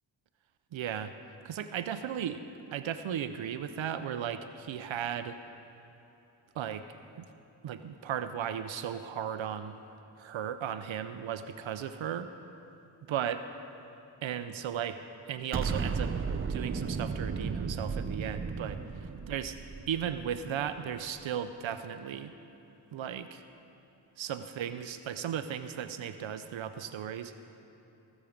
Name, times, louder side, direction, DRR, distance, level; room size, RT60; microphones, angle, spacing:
voice 1, 0.7-1.1 1.4-2.4 2.7-5.3 6.5-6.8 7.2-7.3 7.6-9.8 10.2-12.3 13.1-13.4 14.2-15.0 15.2-18.8 19.3-19.5 19.9-22.3 22.9-23.4 24.2-27.3, right 9 dB, 70° right, 10 dB, 0.7 m, -36 dB
Explosion, 15.5-20.7, right 5 dB, 25° right, 0.6 m, -34 dB
18.0 x 7.4 x 5.1 m, 3.0 s
cardioid pair, 50°, 48 cm